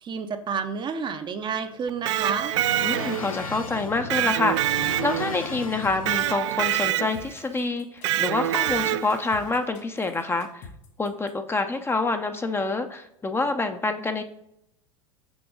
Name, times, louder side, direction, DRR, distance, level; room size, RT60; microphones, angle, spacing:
voice 1, 0.0-2.5, right 6 dB, 25° right, 8 dB, 0.6 m, -30 dB
sound 1, 1.5-6.6, left 5 dB, 85° left, 0.6 m, -37 dB
Electric guitar, 1.9-3.4 4.1-5.5 6.1-7.3 8.0-9.3, right 14 dB, 60° right, 0.4 m, -25 dB
voice 2, 2.8-10.7 11.0-14.2, left 3 dB, 15° left, 7 dB, 0.6 m, -27 dB
sound 2, 5.6-11.3, left 5 dB, 55° left, 2.0 m, -46 dB
6.2 x 6.0 x 3.7 m, 0.78 s
figure-of-eight pair, 80°, 17 cm